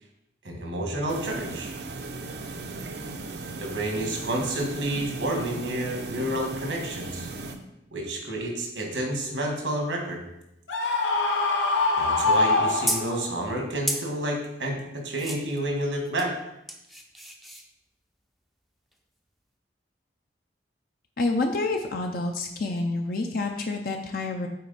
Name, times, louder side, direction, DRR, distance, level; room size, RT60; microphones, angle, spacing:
voice 1, 0.4-1.7 3.6-7.3 7.9-10.2 12.0-16.4, right 1 dB, 85° right, 1 dB, 1.7 m, -30 dB
sound 1, 1.1-7.6, right 3 dB, 65° right, 0.7 m, -37 dB
Screaming, 10.7-13.4, left 3 dB, 85° left, 1.0 m, -24 dB
sound 2, 12.3-13.2 13.9-14.1 15.2-15.6 16.0-16.3 16.7-17.7 18.9-19.0, equal, ahead, 0.5 m, -33 dB
voice 2, 21.2-24.5, left 2 dB, 55° left, 3 dB, 0.6 m, -28 dB
7.6 x 4.3 x 4.1 m, 0.84 s
head